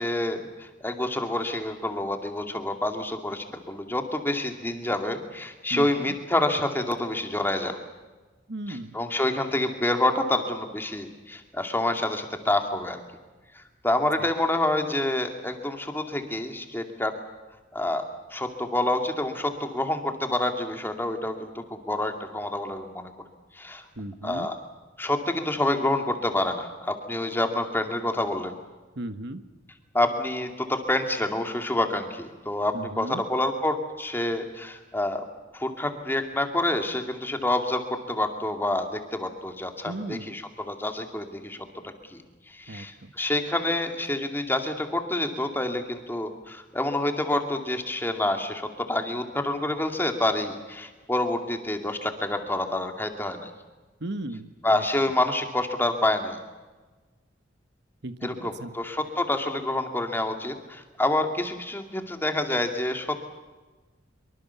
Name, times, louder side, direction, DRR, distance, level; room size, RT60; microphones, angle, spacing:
voice 1, 0.0-7.8 8.7-13.0 13.5-17.1 17.7-18.0 18.3-23.1 23.6-23.8 24.2-24.6 25.0-28.5 29.9-35.2 35.5-41.6 42.1-42.2 42.5-53.5 54.6-56.4 58.2-63.2, left 1 dB, 10° left, 5 dB, 2.3 m, -28 dB
voice 2, 5.7-6.1 8.5-8.9 14.2-14.3 24.0-24.5 29.0-29.4 32.7-33.2 39.8-40.3 42.7-43.1 54.0-54.9 58.0-58.7, right 1 dB, 60° right, 10 dB, 1.3 m, -36 dB
25.0 x 24.0 x 7.0 m, 1.3 s
head